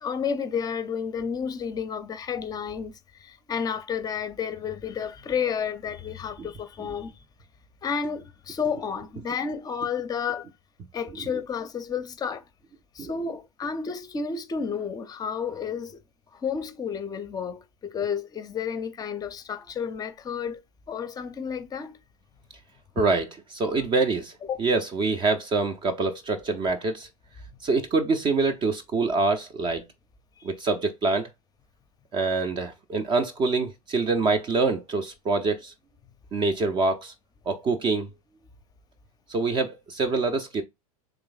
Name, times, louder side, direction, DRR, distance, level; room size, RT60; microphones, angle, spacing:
voice 1, 0.0-7.1 7.8-10.5 10.9-12.4 12.9-16.0 16.3-20.6 20.9-22.0 24.4-24.6 30.4-30.5, left 6 dB, 20° left, 0.6 m, -31 dB
voice 2, 23.0-24.3 24.6-27.1 27.6-29.9 30.4-31.3 32.1-35.7 36.3-37.1 37.5-38.1 39.3-40.6, right 3 dB, 25° right, 0.5 m, -25 dB
3.4 x 3.0 x 3.9 m
hypercardioid pair, 110°, 18 cm